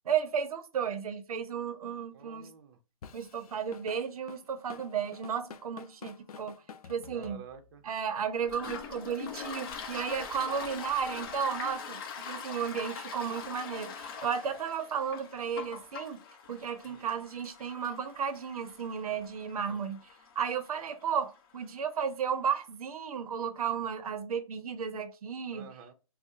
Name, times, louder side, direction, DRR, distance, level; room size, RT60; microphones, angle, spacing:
voice 1, 0.1-2.5 3.1-6.5 6.9-7.4 7.8-16.2 16.5-20.0 20.4-25.7, right 7 dB, 80° right, 0.6 m, -34 dB
voice 2, 2.1-2.8 7.1-7.8 16.9-17.1 19.7-19.8 25.5-25.9, right 7 dB, 40° right, 0.6 m, -50 dB
Drum kit / Drum, 3.0-7.8, left 6 dB, 85° left, 0.4 m, -49 dB
Toilet flush, 8.4-21.8, left 6 dB, 40° left, 0.7 m, -43 dB
4.5 x 2.0 x 2.7 m
hypercardioid pair, 150°, 18 cm